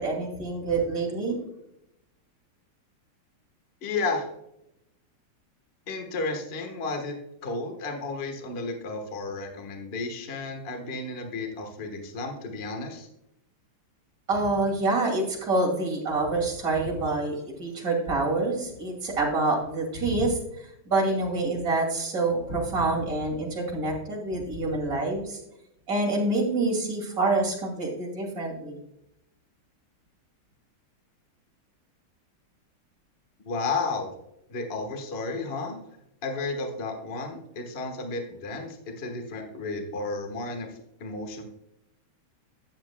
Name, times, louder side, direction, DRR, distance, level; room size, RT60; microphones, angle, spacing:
voice 1, 0.0-1.4 14.3-25.4 25.9-28.8, right 2 dB, 40° right, -1 dB, 2.9 m, -27 dB
voice 2, 3.8-4.3 5.9-7.1 7.4-13.1 33.4-34.1 34.5-35.8 36.2-41.4, left 3 dB, 35° left, 4 dB, 1.2 m, -32 dB
13.0 x 9.3 x 2.2 m, 0.82 s
omnidirectional pair, 2.4 m